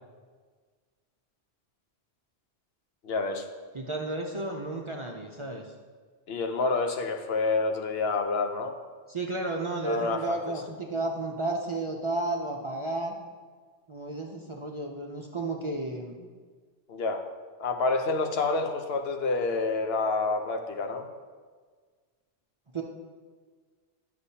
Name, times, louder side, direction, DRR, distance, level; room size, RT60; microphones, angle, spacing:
voice 1, 3.0-3.5 6.3-8.8 9.8-10.4 16.9-17.2 17.6-21.1, left 3 dB, 70° left, 5 dB, 0.9 m, -28 dB
voice 2, 3.7-5.7 9.1-13.2 13.9-16.3 22.7-22.8, right 2 dB, 40° right, 0 dB, 0.5 m, -32 dB
9.7 x 6.6 x 2.8 m, 1.5 s
omnidirectional pair, 1.1 m